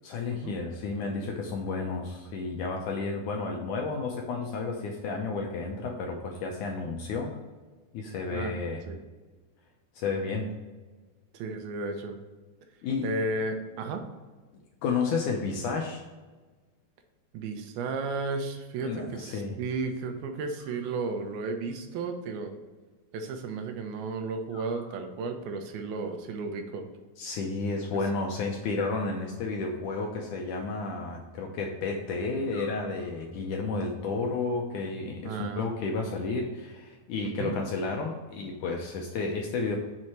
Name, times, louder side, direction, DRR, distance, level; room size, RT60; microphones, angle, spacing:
voice 1, 0.0-7.4 7.9-8.8 10.0-10.6 12.8-13.1 14.8-16.0 18.8-19.6 27.2-39.8, left 4 dB, 80° left, 1 dB, 1.9 m, -32 dB
voice 2, 11.3-12.2 13.0-14.0 17.3-22.6 23.1-26.9 35.2-35.6 37.2-37.6, right 3 dB, 85° right, 5 dB, 2.7 m, -33 dB
sound 1, 20.6-21.4 24.5-25.5 28.7-29.8 32.5-33.5, left 2 dB, 55° left, 2.9 m, -51 dB
6.4 x 4.7 x 4.3 m, 1.3 s
omnidirectional pair, 4.2 m